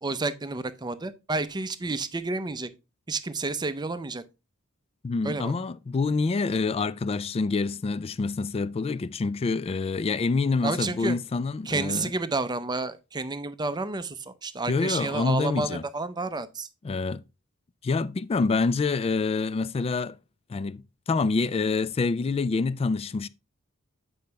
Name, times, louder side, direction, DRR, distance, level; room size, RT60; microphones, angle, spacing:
voice 1, 0.0-2.7 3.1-4.2 5.2-5.5 10.6-11.2 11.7-16.7, right 3 dB, 20° right, 0.6 m, -30 dB
voice 2, 5.0-12.1 14.7-15.8 16.8-17.2 17.8-20.2 20.5-23.3, left 4 dB, 30° left, 0.3 m, -27 dB
8.6 x 5.3 x 3.4 m
head